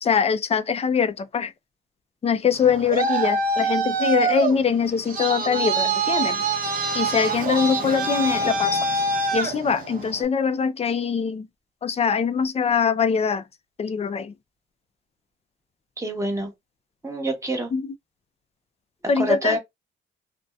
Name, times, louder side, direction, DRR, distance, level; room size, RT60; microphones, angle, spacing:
voice 1, 0.0-1.5 2.2-9.1 9.3-11.5 11.8-13.4 13.8-14.3 17.7-17.8 19.1-19.6, left 6 dB, 30° left, 0.4 m, -23 dB
Traffic noise roadway noise, 2.5-10.3, right 3 dB, 45° right, 0.8 m, -25 dB
voice 2, 16.0-16.5 17.0-17.7 19.2-19.6, right 1 dB, 15° right, 1.1 m, -26 dB
2.6 x 2.1 x 2.3 m
cardioid pair, 90°, 20 cm